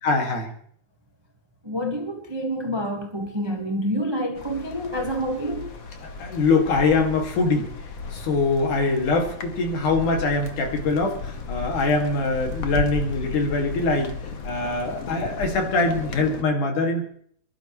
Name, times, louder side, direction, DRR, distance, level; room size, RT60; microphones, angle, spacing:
voice 1, 0.0-0.5 6.2-7.7 8.1-14.1 14.4-17.1, left 3 dB, 85° left, 3.8 m, -23 dB
voice 2, 1.6-5.7, equal, 30° right, 0.5 m, -28 dB
sound 1, 4.4-16.4, left 4 dB, 60° left, 0.8 m, -35 dB
27.5 x 11.5 x 3.2 m
omnidirectional pair, 3.5 m